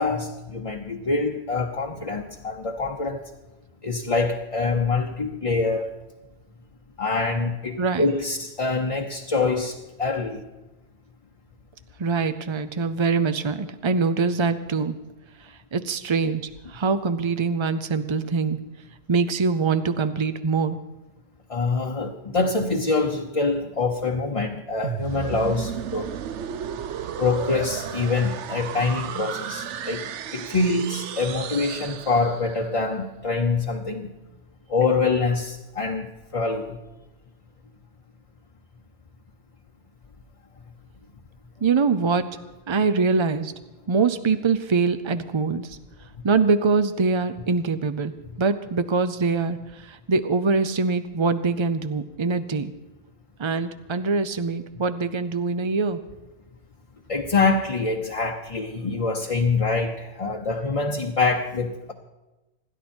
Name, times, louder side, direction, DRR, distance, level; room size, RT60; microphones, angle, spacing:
voice 1, 0.0-3.2 3.8-5.9 7.0-10.4 21.5-26.1 27.2-30.0 30.3-34.1 34.7-36.8 57.1-61.9, left 3 dB, 30° left, 0.8 m, -25 dB
voice 2, 12.0-15.0 15.4-18.6 19.1-20.8 41.6-42.3 42.7-43.5 43.9-52.7 53.4-56.0, right 4 dB, 45° right, 0.3 m, -24 dB
sound 1, 24.8-32.7, right 9 dB, 75° right, 1.0 m, -34 dB
26.5 x 11.0 x 4.4 m
omnidirectional pair, 1.2 m